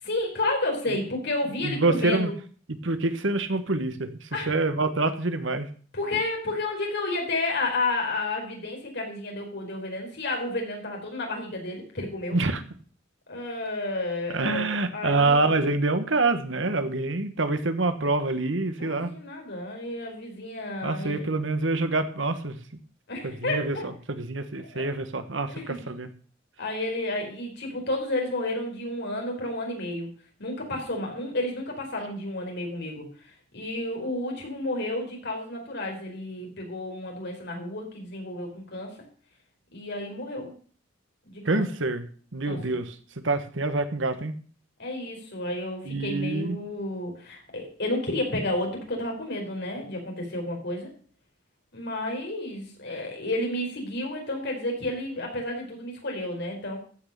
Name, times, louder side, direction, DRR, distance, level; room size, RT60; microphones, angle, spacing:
voice 1, 0.0-2.2 4.3-4.5 5.9-12.4 13.3-15.6 18.8-21.2 23.1-23.9 24.6-24.8 25.5-25.8 26.6-30.1 30.4-38.9 39.7-40.5 41.2-41.6 42.5-42.8 44.8-50.9 51.7-56.8, left 2 dB, 60° left, 1 dB, 4.6 m, -31 dB
voice 2, 1.6-2.3 2.8-5.7 12.3-12.6 14.3-19.1 20.8-22.6 23.2-23.8 24.1-26.1 41.4-42.1 42.3-42.9 43.2-44.3 45.9-46.6, right 3 dB, 70° right, 10 dB, 1.3 m, -26 dB
14.5 x 6.2 x 6.8 m, 0.43 s
head